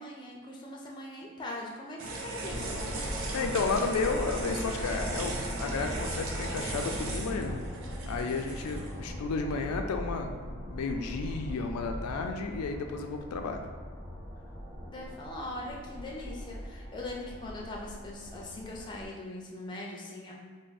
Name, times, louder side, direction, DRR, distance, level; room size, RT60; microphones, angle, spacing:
voice 1, 0.0-2.8 14.9-20.3, left 1 dB, 20° left, -2 dB, 0.4 m, -41 dB
sound 1, 2.0-9.1, right 3 dB, 70° right, 0.5 m, -38 dB
sound 2, 2.4-19.1, equal, 25° right, 1.5 m, -40 dB
voice 2, 3.3-7.6 8.1-13.7, left 4 dB, 90° left, 4 dB, 0.3 m, -32 dB
3.4 x 2.0 x 3.9 m, 1.5 s
head